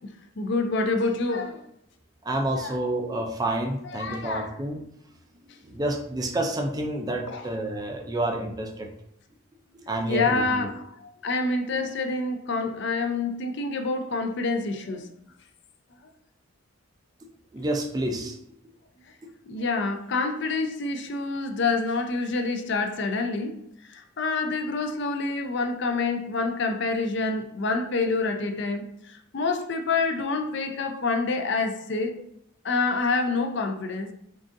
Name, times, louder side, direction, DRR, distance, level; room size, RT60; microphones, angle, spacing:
voice 1, 0.4-1.6 2.6-2.7 4.0-4.5 7.3-7.4 10.1-10.8 11.2-15.1 19.5-23.5 23.9-32.1 32.6-34.1, left 3 dB, 55° left, 5 dB, 0.4 m, -27 dB
voice 2, 2.2-4.8 5.6-8.9 9.9-10.7 17.5-18.4, right 1 dB, 20° right, 3 dB, 0.3 m, -29 dB
3.8 x 3.6 x 2.5 m, 0.75 s
head